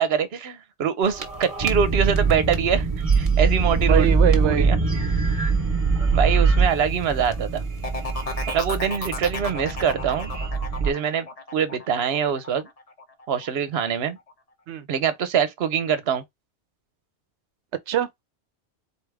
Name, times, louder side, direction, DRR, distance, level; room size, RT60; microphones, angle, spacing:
voice 1, 0.0-2.9 3.2-4.1 4.4-4.8 6.1-7.6 8.5-10.3 10.8-11.3 11.5-12.7 13.3-14.2 14.9-16.2, right 7 dB, 65° right, 1.0 m, -24 dB
sound 1, 1.0-10.9, right 4 dB, 30° right, 1.3 m, -23 dB
voice 2, 3.8-4.7 14.7-14.9 17.9-18.2, right 11 dB, 80° right, 1.0 m, -24 dB
sound 2, 7.8-13.5 13.8-14.3, left 3 dB, 35° left, 1.1 m, -34 dB
4.5 x 3.4 x 3.5 m
omnidirectional pair, 1.2 m